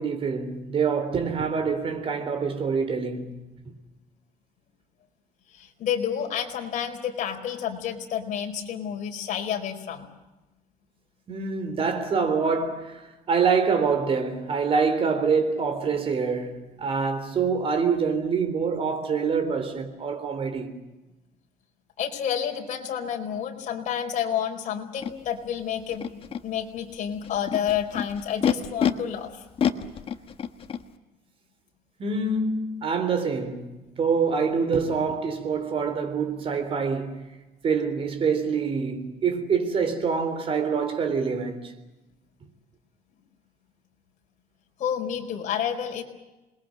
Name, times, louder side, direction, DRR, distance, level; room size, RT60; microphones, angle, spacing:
voice 1, 0.0-3.6 11.3-20.8 32.0-37.3 37.6-41.7, right 5 dB, 40° right, 3.7 m, -26 dB
voice 2, 5.5-10.1 22.0-26.1 26.4-29.4 44.8-46.0, left 9 dB, 55° left, 4.6 m, -29 dB
Animal, 25.0-25.1 25.9-26.4 27.2-28.9 29.6-30.8, left 8 dB, 40° left, 1.4 m, -27 dB
27.5 x 21.5 x 7.7 m
cardioid pair, 160°, 15 cm